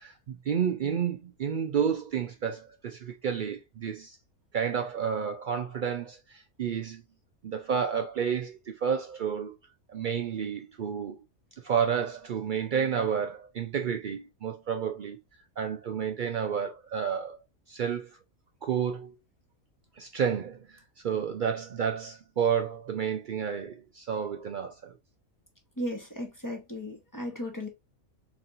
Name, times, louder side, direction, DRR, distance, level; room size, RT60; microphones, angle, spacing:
voice 1, 0.0-4.2 4.5-7.0 7.4-9.5 9.9-11.2 11.6-15.2 15.6-17.4 17.7-18.2 18.6-19.1 20.0-24.9, right 7 dB, 90° right, 0.4 m, -30 dB
voice 2, 25.8-27.7, left 1 dB, 15° left, 0.9 m, -35 dB
4.1 x 3.4 x 2.5 m
omnidirectional pair, 1.5 m